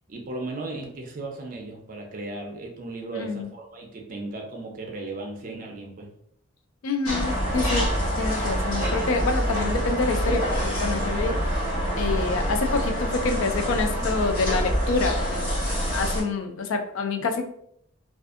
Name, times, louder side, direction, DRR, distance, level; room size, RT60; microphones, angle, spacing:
voice 1, 0.1-6.1, right 2 dB, 40° right, 1 dB, 0.5 m, -36 dB
voice 2, 3.1-3.5 6.8-7.8 8.2-11.3 12.0-15.6 15.9-17.4, left 4 dB, 65° left, 6 dB, 0.3 m, -27 dB
sound 1, 7.0-16.2, equal, 85° left, 1.4 m, -26 dB
2.5 x 2.4 x 2.4 m, 0.69 s
head